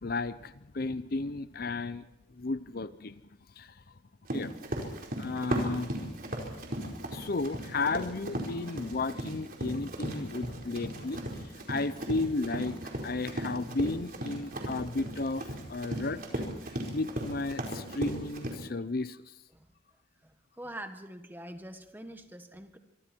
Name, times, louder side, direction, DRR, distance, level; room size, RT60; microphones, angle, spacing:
voice 1, 0.0-2.0 2.4-3.1 3.6-3.7 4.3-4.5 5.2-5.9 7.1-11.2 11.7-12.8 13.0-16.2 16.9-19.2, left 3 dB, 50° left, 14 dB, 0.7 m, -33 dB
Run, 4.3-18.5, right 1 dB, 50° right, 4.7 m, -37 dB
voice 2, 20.6-22.8, right 1 dB, 10° right, 7 dB, 1.6 m, -44 dB
26.5 x 24.0 x 4.6 m, 0.87 s
head